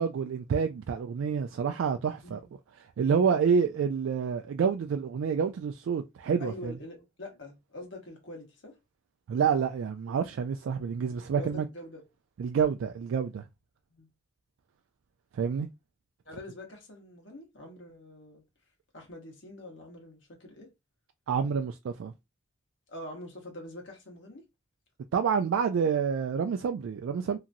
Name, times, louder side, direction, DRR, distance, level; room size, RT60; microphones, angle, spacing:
voice 1, 0.0-2.4 3.0-6.8 9.3-11.7 12.4-13.5 15.3-15.7 21.3-22.1 25.1-27.4, right 6 dB, 90° right, 0.3 m, -28 dB
voice 2, 6.4-8.7 11.3-12.0 13.9-14.1 16.2-18.4 18.9-20.7 22.9-24.4, left 1 dB, 70° left, 1.2 m, -44 dB
2.9 x 2.5 x 2.5 m
head